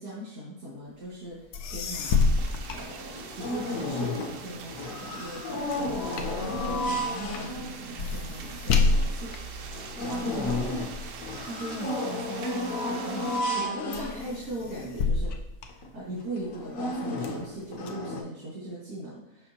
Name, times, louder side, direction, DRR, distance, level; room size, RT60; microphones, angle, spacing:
voice 1, 0.0-2.4 2.7-9.3 9.7-10.6 11.4-15.3 15.6-19.5, right 1 dB, 80° right, -8 dB, 2.5 m, -39 dB
sound 1, 1.3-1.4 1.5-3.6 4.1-12.7 13.3-13.6 13.9-16.4 16.9-17.9, left 4 dB, 90° left, 1.2 m, -30 dB
sound 2, 2.1-13.4, right 6 dB, 65° right, 0.9 m, -43 dB
sound 3, 2.4-2.5 2.8-4.5 4.7-7.9 8.5-8.6 9.0-9.1 9.6-14.7 15.3-15.4 15.7-15.9 16.4-18.2, left 1 dB, 65° left, 1.2 m, -33 dB
6.8 x 5.6 x 2.9 m, 0.80 s
omnidirectional pair, 1.6 m